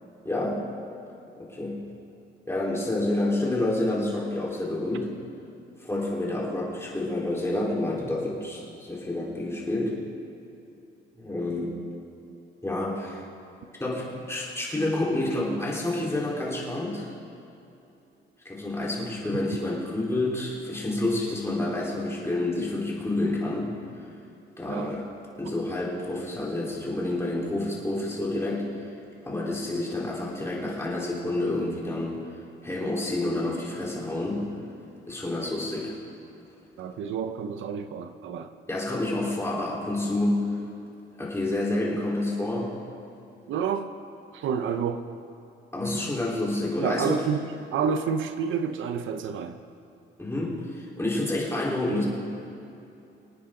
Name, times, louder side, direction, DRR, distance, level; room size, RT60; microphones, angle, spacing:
voice 1, 0.2-0.6 1.4-1.8 2.5-5.1 5.8-10.0 11.2-11.8 12.6-13.2 13.8-17.1 18.4-23.8 24.6-25.1 25.4-28.9 29.2-32.2 32.6-34.5 35.0-36.0 38.7-40.4 41.2-42.7 45.7-47.2 50.2-52.0, left 2 dB, 15° left, -5 dB, 4.0 m, -28 dB
voice 2, 36.8-38.5 43.5-43.9 44.3-45.0 46.8-49.6, right 6 dB, 80° right, 9 dB, 0.8 m, -29 dB
25.0 x 9.8 x 3.9 m, 2.8 s
cardioid pair, 90°, 20 cm